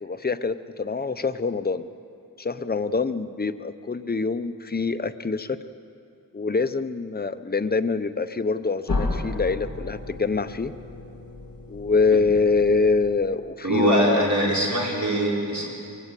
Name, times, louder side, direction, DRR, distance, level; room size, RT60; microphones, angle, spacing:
voice 1, 0.0-1.9 2.4-5.6 6.3-10.7 11.7-14.3, left 4 dB, 25° left, 11 dB, 0.8 m, -25 dB
sound 1, 8.9-13.6, left 2 dB, 70° left, 3.4 m, -33 dB
voice 2, 13.6-15.7, right 1 dB, 55° right, -3 dB, 5.6 m, -22 dB
23.0 x 16.5 x 8.4 m, 2.5 s
wide cardioid pair, 50°, 35 cm